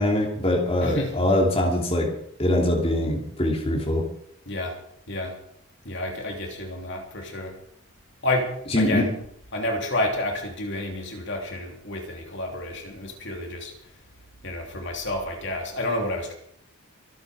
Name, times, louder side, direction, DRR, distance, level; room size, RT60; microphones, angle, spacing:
voice 1, 0.0-2.1 2.4-4.1 8.7-9.1, left 1 dB, 25° left, -1 dB, 2.9 m, -23 dB
voice 2, 0.8-1.1 4.5-4.8 5.1-5.4 5.8-7.6 8.2-9.1 9.5-13.7 14.4-16.3, left 1 dB, 55° left, 1 dB, 3.1 m, -30 dB
25.0 x 9.5 x 5.0 m, 0.70 s
head